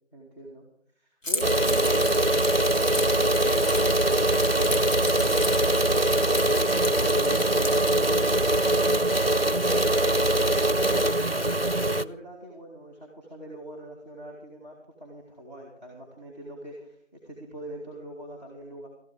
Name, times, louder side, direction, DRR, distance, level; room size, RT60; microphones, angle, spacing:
voice 1, 0.1-0.6 1.0-17.0 17.2-18.9, right 1 dB, 35° left, -1 dB, 2.6 m, -42 dB
Keys jangling, 1.2-8.0, left 1 dB, 75° left, 2.0 m, -36 dB
sound 1, 1.4-12.0, right 1 dB, 50° right, 0.6 m, -22 dB
14.5 x 12.0 x 5.3 m, 0.67 s
figure-of-eight pair, 175°, 39 cm